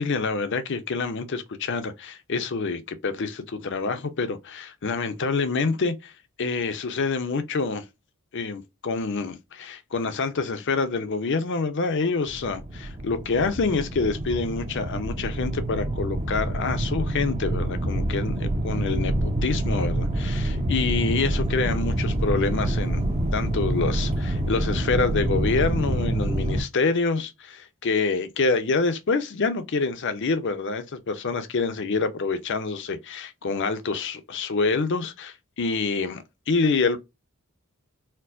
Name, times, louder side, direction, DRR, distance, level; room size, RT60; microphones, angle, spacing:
voice 1, 0.0-6.1 6.4-7.8 8.3-23.0 23.3-37.0, left 4 dB, 55° left, 0.6 m, -27 dB
sound 1, 12.3-26.6, right 1 dB, 25° right, 0.6 m, -27 dB
4.4 x 2.1 x 2.5 m
head